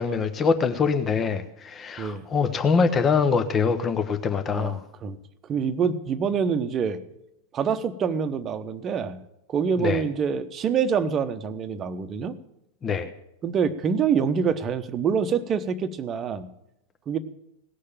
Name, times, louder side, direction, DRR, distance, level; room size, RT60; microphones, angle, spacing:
voice 1, 0.0-4.8 9.8-10.0 12.8-13.1, left 5 dB, 25° left, 9 dB, 0.9 m, -24 dB
voice 2, 4.5-5.2 5.5-7.0 7.5-9.2 9.5-12.3 13.4-16.5 17.1-17.2, right 6 dB, 25° right, 11 dB, 0.9 m, -26 dB
17.5 x 6.6 x 8.6 m, 0.83 s
figure-of-eight pair, 90°, 0 cm